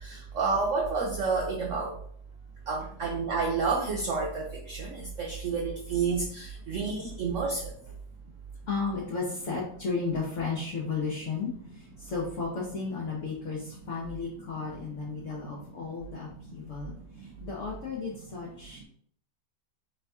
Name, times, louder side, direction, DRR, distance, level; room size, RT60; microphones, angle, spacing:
voice 1, 0.0-1.9 2.7-7.7, right 4 dB, 65° right, 0 dB, 0.8 m, -30 dB
voice 2, 8.7-18.8, left 4 dB, 50° left, -4 dB, 1.1 m, -34 dB
4.0 x 3.5 x 3.5 m, 0.62 s
omnidirectional pair, 1.9 m